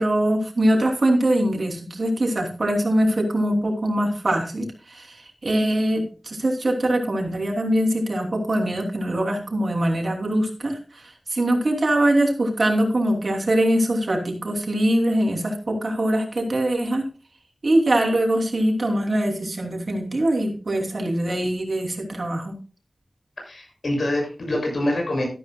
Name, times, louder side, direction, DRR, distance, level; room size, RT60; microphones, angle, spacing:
voice 1, 0.0-17.0 17.6-22.6, right 1 dB, 60° right, 3 dB, 3.0 m, -22 dB
voice 2, 23.4-25.2, left 1 dB, 75° left, 1 dB, 6.9 m, -25 dB
13.5 x 12.5 x 2.3 m, 0.35 s
wide cardioid pair, 70°, 0 cm